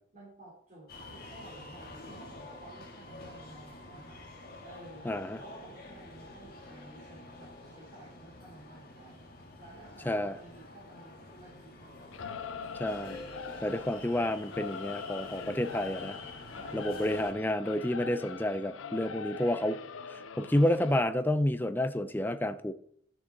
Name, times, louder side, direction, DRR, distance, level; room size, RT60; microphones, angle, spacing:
voice 1, 0.1-4.2 4.6-5.1 5.4-9.2 9.6-12.8 16.5-16.8, right 2 dB, 40° right, -7 dB, 3.4 m, -53 dB
sound 1, 0.9-17.3, left 2 dB, 50° left, 1.6 m, -48 dB
voice 2, 5.0-5.4 10.1-10.3 12.8-13.2 13.6-16.2 16.7-19.8 20.1-22.7, left 1 dB, 10° left, 12 dB, 0.5 m, -30 dB
Singing / Musical instrument, 12.1-21.0, left 6 dB, 80° left, 0.5 m, -43 dB
12.5 x 6.2 x 4.0 m, 0.65 s
head